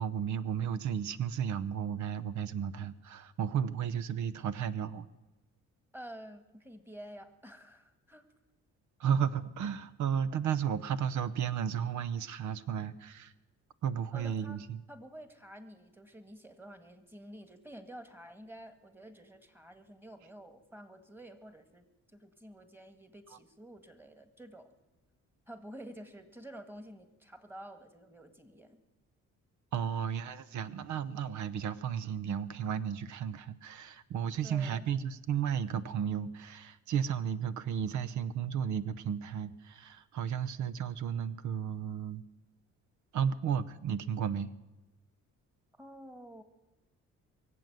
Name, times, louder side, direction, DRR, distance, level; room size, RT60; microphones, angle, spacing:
voice 1, 0.0-5.1 9.0-13.3 13.8-14.8 29.7-42.2 43.1-44.5, right 8 dB, 70° right, 15 dB, 0.8 m, -33 dB
voice 2, 5.9-8.3 14.1-14.6 14.9-24.7 25.5-28.8 34.4-34.9 45.7-46.4, right 1 dB, 5° right, 9 dB, 1.8 m, -50 dB
23.5 x 7.8 x 7.9 m, 1.1 s
cardioid pair, 90°, 30 cm